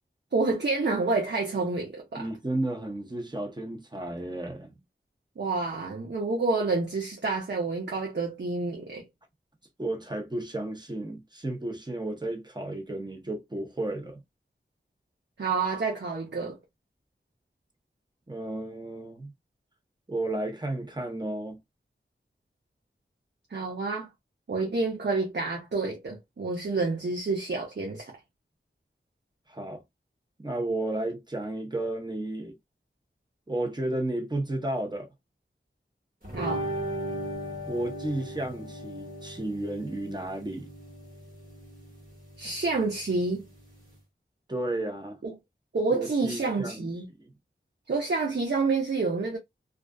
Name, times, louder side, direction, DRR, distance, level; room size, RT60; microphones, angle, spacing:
voice 1, 0.3-2.3 5.4-9.1 15.4-16.6 23.5-24.1 24.5-28.1 36.3-36.6 42.4-43.4 45.2-45.3 45.7-47.1 47.9-49.4, right 3 dB, 60° right, 0.6 m, -28 dB
voice 2, 2.2-4.8 9.8-14.2 18.3-19.3 20.1-21.6 29.5-29.8 30.4-32.6 33.5-35.1 37.6-40.7 44.5-45.2 45.9-46.8 47.2-47.3, right 1 dB, 20° right, 0.8 m, -33 dB
sound 1, 36.2-44.0, right 1 dB, 40° right, 1.3 m, -38 dB
2.4 x 2.3 x 2.3 m
wide cardioid pair, 45°, 21 cm